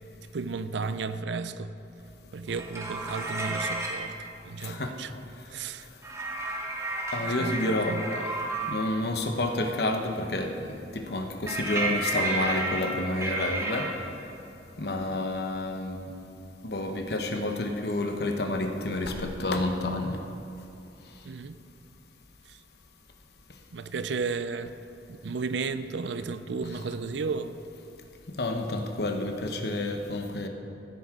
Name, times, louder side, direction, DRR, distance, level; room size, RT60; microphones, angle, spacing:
voice 1, 0.3-1.7 2.3-4.1 4.4-5.1 5.5-5.9 7.2-8.3 21.2-21.6 22.5-22.6 23.7-24.7 25.2-27.6, right 4 dB, 75° right, 12 dB, 0.5 m, -33 dB
sound 1, 2.5-4.1 6.0-8.8 11.5-13.9, right 2 dB, 15° right, 1.1 m, -31 dB
voice 2, 4.6-4.9 7.1-8.0 8.7-13.9 14.8-16.0 16.6-20.2 28.3-30.5, left 2 dB, 60° left, 4 dB, 1.0 m, -29 dB
15.5 x 9.3 x 3.7 m, 2.7 s
head